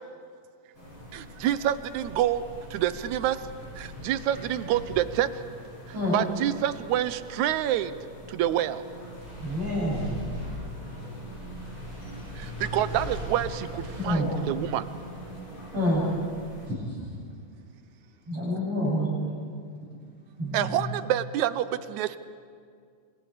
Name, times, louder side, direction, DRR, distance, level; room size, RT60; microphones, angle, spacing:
sound 1, 0.7-16.7, equal, 45° left, 7.9 m, -40 dB
voice 1, 1.1-2.4 2.7-3.4 3.8-5.3 6.1-7.9 8.3-8.8 12.4-14.8 16.1-16.3 20.5-22.2, right 12 dB, 85° right, 13 dB, 2.2 m, -27 dB
voice 2, 9.4-10.1 14.0-14.3 15.7-16.1 16.6-16.7 18.3-19.1 20.4-20.8, equal, 55° right, -7 dB, 8.9 m, -27 dB
voice 3, 10.5-12.6 17.3-17.4 17.8-17.9 18.2-18.4, equal, 5° left, -3 dB, 4.5 m, -64 dB
29.5 x 26.5 x 5.1 m, 2.2 s
omnidirectional pair, 3.3 m